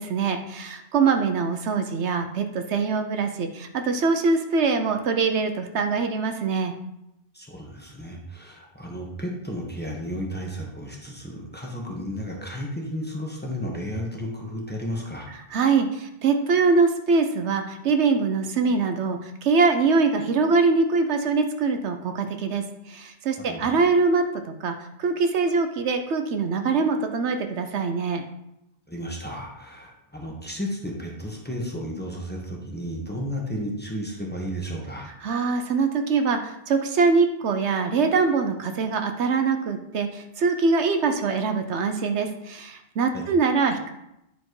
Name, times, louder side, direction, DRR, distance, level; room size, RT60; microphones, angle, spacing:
voice 1, 0.0-6.7 15.5-28.2 35.2-43.9, right 4 dB, 75° right, 6 dB, 1.0 m, -23 dB
voice 2, 7.3-15.3 23.4-23.7 28.9-35.2 43.1-43.2, equal, 10° left, -1 dB, 1.3 m, -33 dB
10.0 x 4.3 x 4.8 m, 0.83 s
omnidirectional pair, 1.2 m